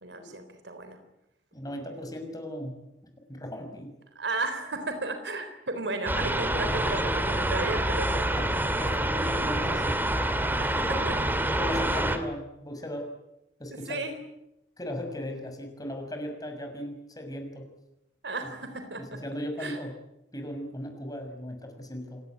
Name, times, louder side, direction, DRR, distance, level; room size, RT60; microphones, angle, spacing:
voice 1, 0.0-1.0 4.2-8.3 10.6-11.2 13.7-14.2 18.2-19.2 19.6-19.8, right 2 dB, 75° right, 8 dB, 3.8 m, -34 dB
voice 2, 1.5-2.8 3.3-3.9 6.9-7.0 8.3-8.5 8.8-10.1 10.7-11.2 11.5-13.1 13.6-14.1 14.8-17.7 18.4-18.5 19.0-20.0 20.3-22.2, left 1 dB, 20° left, 4 dB, 6.2 m, -37 dB
sound 1, 6.1-12.2, right 1 dB, 10° right, 2.4 m, -27 dB
28.0 x 18.0 x 9.4 m, 0.86 s
head